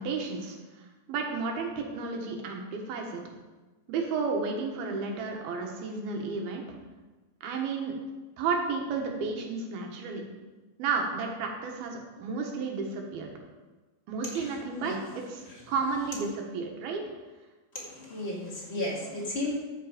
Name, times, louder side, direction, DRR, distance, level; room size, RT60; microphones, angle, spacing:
voice 1, 0.0-3.2 3.9-6.6 7.4-7.9 8.4-10.2 10.8-13.3 14.1-17.0, right 4 dB, 80° right, 2 dB, 3.3 m, -32 dB
voice 2, 14.3-15.0 17.7-19.5, left 1 dB, 20° left, -4 dB, 1.9 m, -34 dB
14.0 x 6.8 x 5.1 m, 1.2 s
omnidirectional pair, 4.3 m